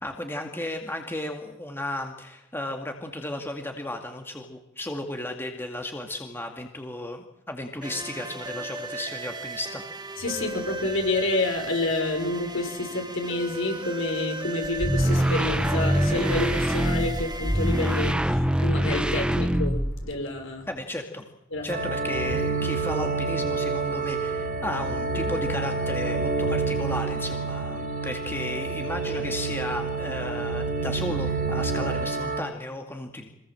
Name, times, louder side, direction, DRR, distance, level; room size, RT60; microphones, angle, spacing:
voice 1, 0.0-9.8 20.7-21.2 21.6-33.3, left 1 dB, 10° left, 3 dB, 2.2 m, -34 dB
sound 1, 7.8-18.1, right 2 dB, 20° right, 1.8 m, -36 dB
voice 2, 10.2-20.7 21.5-21.7, left 2 dB, 65° left, 5 dB, 5.6 m, -29 dB
sound 2, 14.6-20.1, equal, 5° right, 0.8 m, -24 dB
sound 3, 21.7-32.4, right 4 dB, 45° right, 5.2 m, -28 dB
26.0 x 20.5 x 7.7 m, 0.87 s
head